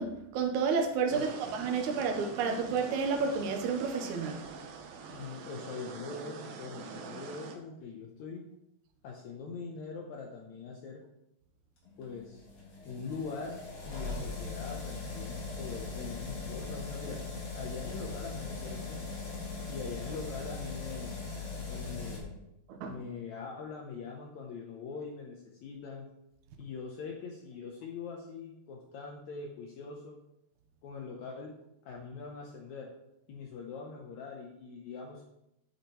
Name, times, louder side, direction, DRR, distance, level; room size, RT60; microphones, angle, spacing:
voice 1, 0.0-4.4 22.7-23.0, right 5 dB, 65° right, 4 dB, 2.1 m, -31 dB
sound 1, 1.1-7.6, right 5 dB, 90° right, 2.7 m, -45 dB
voice 2, 5.1-8.4 9.0-11.0 12.0-12.4 12.8-17.2 17.5-19.0 19.7-21.1 21.6-22.5 22.9-26.1 26.6-30.2 30.8-31.5 31.8-32.9 33.3-35.2, left 5 dB, 75° left, 0 dB, 1.7 m, -42 dB
sound 2, 11.9-22.2, left 3 dB, 50° left, 3.0 m, -40 dB
8.8 x 8.4 x 3.1 m, 0.84 s
omnidirectional pair, 4.3 m